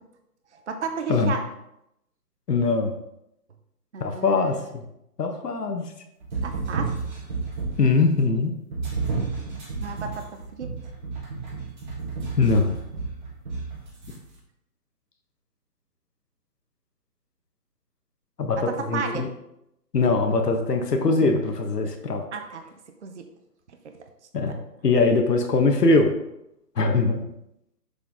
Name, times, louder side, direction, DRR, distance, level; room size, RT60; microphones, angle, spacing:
voice 1, 0.5-1.5 3.9-4.6 6.4-6.9 9.8-10.7 18.7-19.3 22.3-22.7 23.0-23.2 23.8-24.0, right 5 dB, 45° right, 6 dB, 0.7 m, -33 dB
voice 2, 1.1-1.4 2.5-3.0 4.0-4.8 5.2-5.9 7.8-8.5 12.4-12.7 18.4-19.3 19.9-22.2 24.3-26.1 26.7-27.3, left 3 dB, 75° left, 4 dB, 1.4 m, -22 dB
sound 1, 6.2-8.0 8.7-14.1, right 4 dB, 30° right, 1.5 m, -31 dB
6.4 x 5.2 x 3.7 m, 0.82 s
hypercardioid pair, 165°, 48 cm